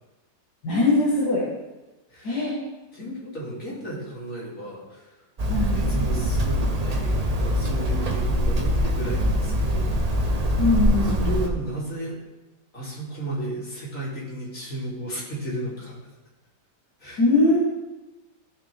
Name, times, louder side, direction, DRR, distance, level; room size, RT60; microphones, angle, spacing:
voice 1, 0.6-1.5 2.2-2.6 5.5-5.8 10.6-11.5 17.2-17.6, left 2 dB, 70° left, -6 dB, 2.3 m, -21 dB
voice 2, 2.1-2.5 2.9-5.1 5.7-10.3 11.0-12.2 12.7-16.0 17.0-17.2, right 1 dB, 50° left, -7 dB, 3.5 m, -34 dB
Hammer, 5.4-11.5, equal, 40° right, 0.5 m, -23 dB
15.5 x 6.0 x 3.5 m, 1.1 s
omnidirectional pair, 1.8 m